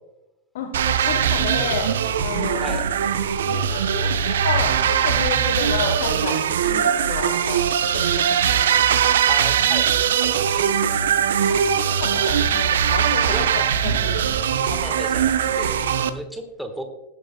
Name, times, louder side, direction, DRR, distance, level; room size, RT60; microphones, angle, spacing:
voice 1, 0.5-1.9 2.2-2.8 3.5-7.6 7.9-8.8 11.4-14.2, left 7 dB, 55° left, 6 dB, 1.0 m, -31 dB
sound 1, 0.7-16.1, right 8 dB, 60° right, 0.6 m, -21 dB
voice 2, 9.3-9.9 10.2-10.7 13.3-13.5 14.6-16.8, right 1 dB, ahead, 6 dB, 1.3 m, -34 dB
17.5 x 9.2 x 2.2 m, 0.97 s
figure-of-eight pair, 90°, 0 cm